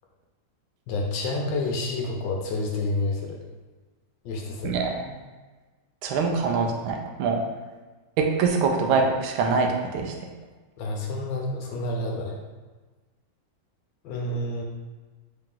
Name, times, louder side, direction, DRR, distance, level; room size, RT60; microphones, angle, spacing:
voice 1, 0.9-3.4 4.2-4.8 10.8-12.4 14.0-14.6, left 2 dB, 75° left, 0 dB, 1.3 m, -29 dB
voice 2, 4.6-5.2 6.0-7.4 8.2-10.3, right 4 dB, 80° right, 2 dB, 1.4 m, -24 dB
3.8 x 2.9 x 3.7 m, 1.3 s
omnidirectional pair, 2.2 m